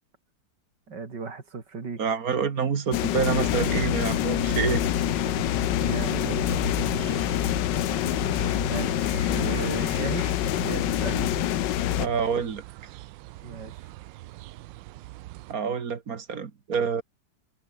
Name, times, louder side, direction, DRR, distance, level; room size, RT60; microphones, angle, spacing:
voice 1, 0.9-2.0 5.8-6.7 8.6-10.3 10.6-11.3 13.4-13.9, right 4 dB, 70° right, 3.7 m, -35 dB
voice 2, 2.0-4.9 12.0-12.6 15.5-17.0, right 6 dB, 55° right, 1.9 m, -27 dB
sound 1, 2.9-12.1, left 14 dB, 75° left, 1.4 m, -26 dB
sound 2, 3.2-15.5, right 17 dB, 90° right, 1.3 m, -38 dB
omnidirectional pair, 2.0 m